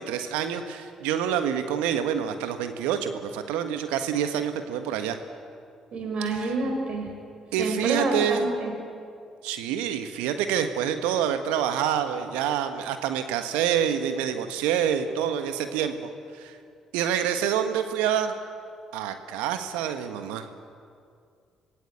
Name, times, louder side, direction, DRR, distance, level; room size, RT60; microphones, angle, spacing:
voice 1, 0.0-5.2 6.2-6.4 7.5-8.5 9.4-16.6 16.9-18.3 18.9-20.5, right 9 dB, 75° right, 8 dB, 1.5 m, -27 dB
voice 2, 5.9-7.1 7.6-8.7, right 2 dB, 55° right, 2 dB, 4.9 m, -28 dB
25.5 x 16.5 x 8.3 m, 2.3 s
hypercardioid pair, 45°, 2 cm